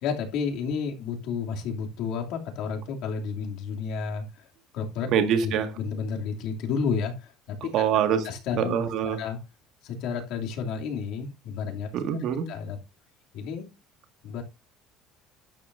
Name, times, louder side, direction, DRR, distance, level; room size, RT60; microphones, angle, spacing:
voice 1, 0.0-4.5 4.7-5.1 5.4-7.6 8.2-8.8 9.0-9.4 9.8-11.9 12.5-12.8 13.3-13.7 14.2-14.4, left 6 dB, 65° left, 2.9 m, -31 dB
voice 2, 5.1-5.7 7.7-8.3 8.5-9.2 11.9-12.5, right 8 dB, 55° right, 1.8 m, -24 dB
12.5 x 9.5 x 2.7 m
cardioid pair, 140°, 0 cm